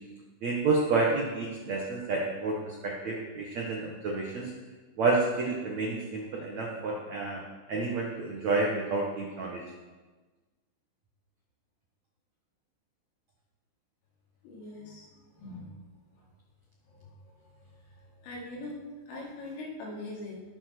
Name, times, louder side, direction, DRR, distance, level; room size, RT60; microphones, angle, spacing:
voice 1, 0.4-4.5 5.0-7.4 7.7-9.6, right 3 dB, 85° right, -1 dB, 1.5 m, -29 dB
voice 2, 14.4-15.8 16.9-17.1 17.4-17.5 18.0-20.4, left 2 dB, 85° left, -3 dB, 5.8 m, -42 dB
19.0 x 7.1 x 6.1 m, 1.3 s
omnidirectional pair, 5.7 m